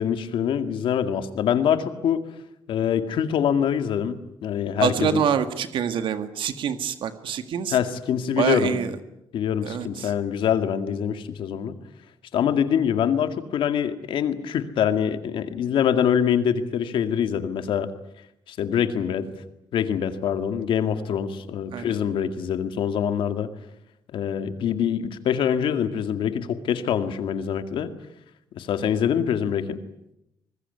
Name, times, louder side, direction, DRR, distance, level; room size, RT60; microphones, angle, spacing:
voice 1, 0.0-2.2 2.7-5.2 7.7-8.8 9.3-11.8 12.3-17.9 18.5-19.3 19.7-23.5 24.1-27.9 28.5-29.8, left 8 dB, 85° left, 9 dB, 2.1 m, -24 dB
voice 2, 4.8-7.8 8.4-9.0 9.6-10.1 21.7-22.0, right 8 dB, 80° right, 10 dB, 1.8 m, -26 dB
25.0 x 21.0 x 9.7 m, 0.83 s
cardioid pair, 145°, 8 cm